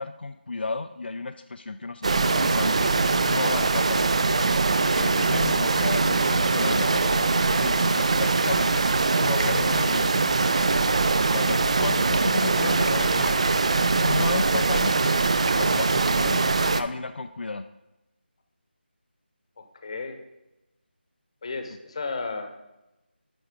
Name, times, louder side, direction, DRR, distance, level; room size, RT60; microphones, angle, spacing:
voice 1, 0.0-2.9 3.3-4.1 4.9-7.1 7.5-8.9 9.2-10.3 11.3-13.4 13.9-17.6, left 3 dB, 65° left, 8 dB, 0.5 m, -33 dB
sound 1, 2.0-16.8, right 3 dB, 35° right, 0.4 m, -22 dB
voice 2, 6.5-7.2 9.4-9.9 12.6-13.3 19.6-20.2 21.4-22.5, left 4 dB, 35° left, 6 dB, 0.9 m, -35 dB
10.5 x 4.4 x 5.0 m, 0.97 s
figure-of-eight pair, 170°, 6 cm